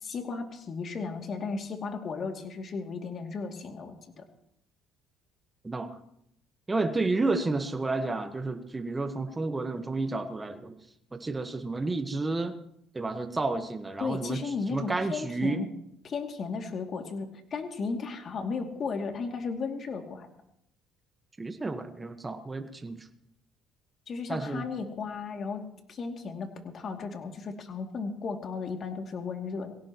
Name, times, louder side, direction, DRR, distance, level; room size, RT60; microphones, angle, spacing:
voice 1, 0.0-4.2 14.0-15.7 16.0-20.3 24.1-29.7, left 4 dB, 45° left, 3 dB, 2.7 m, -35 dB
voice 2, 6.7-10.7 11.1-12.5 12.9-14.4 14.7-15.6 21.4-23.0 24.3-24.7, right 3 dB, 20° right, 7 dB, 1.4 m, -31 dB
22.5 x 17.5 x 3.1 m, 0.76 s
supercardioid pair, 90°, 0 cm